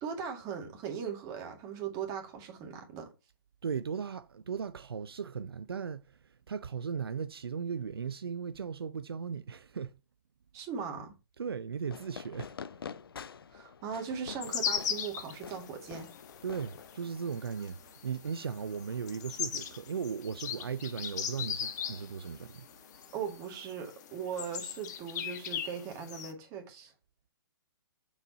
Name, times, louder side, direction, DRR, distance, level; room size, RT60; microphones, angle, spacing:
voice 1, 0.0-3.1 10.5-11.1 13.5-16.1 23.1-26.9, right 7 dB, 25° right, 2.0 m, -39 dB
voice 2, 3.6-9.9 11.4-12.8 16.4-22.7, right 6 dB, 80° right, 0.5 m, -37 dB
Fireworks, 11.8-17.4, left 7 dB, 75° left, 0.5 m, -47 dB
sound 1, 14.4-26.3, left 8 dB, 45° left, 1.3 m, -39 dB
6.6 x 4.8 x 4.1 m
hypercardioid pair, 130°, 12 cm